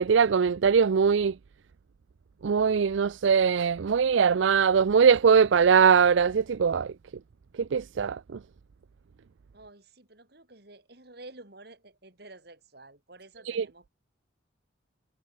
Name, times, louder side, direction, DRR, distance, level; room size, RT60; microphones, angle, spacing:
voice 1, 0.0-1.3 2.4-6.9 7.6-8.2 13.5-13.7, right 6 dB, 80° right, 0.4 m, -21 dB
voice 2, 9.5-13.9, right 2 dB, 55° right, 4.1 m, -50 dB
head